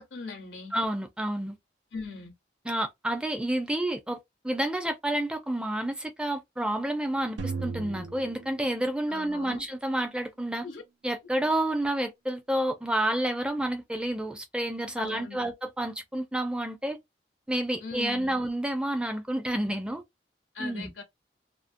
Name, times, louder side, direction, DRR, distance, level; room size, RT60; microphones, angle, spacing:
voice 1, 0.0-0.7 1.9-2.3 9.1-9.7 10.6-10.8 15.0-15.5 17.8-18.4 20.5-21.0, left 4 dB, 90° left, 0.8 m, -39 dB
voice 2, 0.7-1.6 2.7-4.2 4.4-10.7 11.0-17.0 17.5-20.0 20.6-20.9, right 1 dB, 5° right, 0.4 m, -29 dB
sound 1, 7.4-9.5, right 4 dB, 85° right, 0.5 m, -37 dB
2.5 x 2.0 x 2.5 m
head